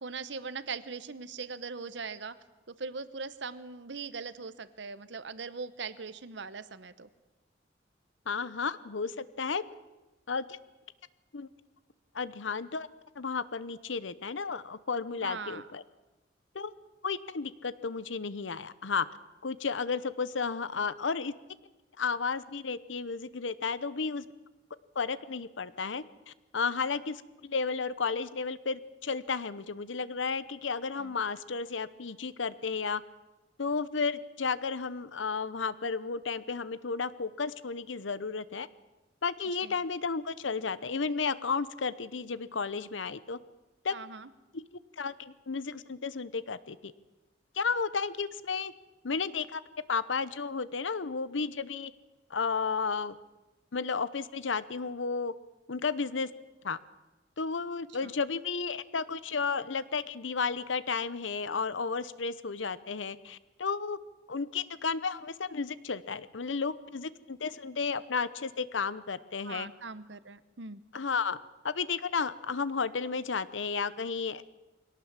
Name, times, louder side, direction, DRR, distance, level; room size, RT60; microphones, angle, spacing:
voice 1, 0.0-2.3 2.7-7.1 15.2-15.6 31.0-31.1 39.6-39.7 43.9-44.3 58.0-58.1 69.4-70.8, right 4 dB, 70° right, 14 dB, 1.0 m, -40 dB
voice 2, 8.3-9.6 10.3-10.4 11.3-11.5 12.1-12.9 13.2-15.8 16.5-16.7 17.0-19.1 19.4-21.3 22.0-24.2 24.9-33.0 33.6-38.7 39.2-43.4 43.8-43.9 44.5-44.6 45.0-46.9 47.5-48.7 49.0-49.6 49.9-51.9 52.3-53.1 53.7-55.3 55.7-56.3 56.6-56.8 57.4-64.0 64.3-69.7 70.9-71.4 71.6-74.4, left 5 dB, 90° left, 16 dB, 0.9 m, -33 dB
22.0 x 18.0 x 7.4 m, 1.1 s
head